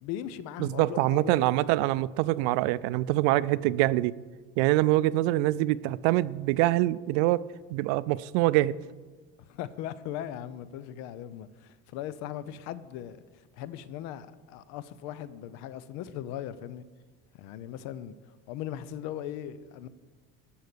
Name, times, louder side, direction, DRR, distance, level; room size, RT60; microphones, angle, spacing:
voice 1, 0.0-1.7 9.4-13.2 13.5-16.8 17.3-18.1 18.5-19.9, left 11 dB, 65° left, 0.6 m, -39 dB
voice 2, 0.6-4.1 4.6-7.5 7.7-8.8, right 17 dB, 90° right, 0.5 m, -25 dB
12.5 x 5.7 x 6.8 m
cardioid pair, 165°, 29 cm